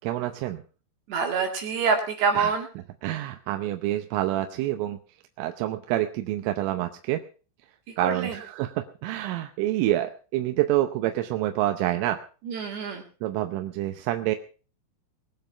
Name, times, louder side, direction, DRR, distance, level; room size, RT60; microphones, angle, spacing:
voice 1, 0.0-0.6 2.3-2.5 3.0-5.0 5.4-7.2 8.0-12.2 13.2-14.4, right 14 dB, 80° right, 7 dB, 3.3 m, -27 dB
voice 2, 1.1-2.7 8.0-8.4 12.5-13.0, right 5 dB, 60° right, 2 dB, 3.9 m, -26 dB
21.0 x 9.0 x 5.6 m, 0.38 s
omnidirectional pair, 5.9 m